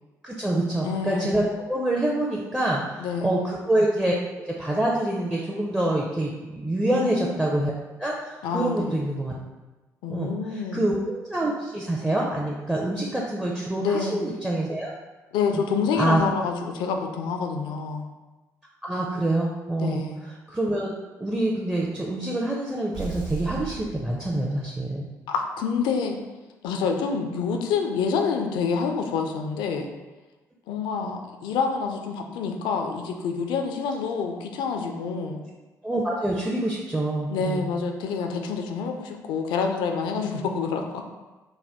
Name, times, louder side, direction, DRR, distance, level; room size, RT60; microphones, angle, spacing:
voice 1, 0.2-1.4 1.7-4.1 4.5-7.7 8.0-9.3 10.1-14.9 15.5-15.6 16.0-16.2 18.9-20.0 20.5-20.9 21.2-25.1 35.8-37.7, right 1 dB, 10° right, -3 dB, 0.5 m, -26 dB
voice 2, 0.8-1.4 3.0-3.4 6.9-7.3 8.4-9.0 10.0-10.9 13.8-14.2 15.3-18.0 19.8-20.3 25.3-26.2 26.6-29.9 30.7-35.4 37.3-41.0, left 5 dB, 55° left, 4 dB, 0.4 m, -27 dB
sound 1, 22.9-24.8, right 5 dB, 45° right, 1.2 m, -36 dB
4.1 x 2.2 x 3.4 m, 1.2 s
figure-of-eight pair, 45°, 9 cm